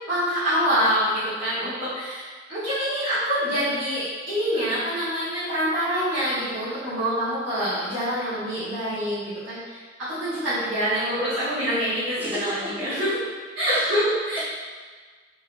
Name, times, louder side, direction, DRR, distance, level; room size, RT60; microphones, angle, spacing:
voice 1, 0.1-13.2 13.5-14.4, equal, 90° right, -15 dB, 1.2 m, -26 dB
voice 2, 12.2-12.9 13.6-14.0, right 1 dB, 10° right, -7 dB, 0.6 m, -34 dB
3.5 x 2.1 x 3.2 m, 1.5 s
head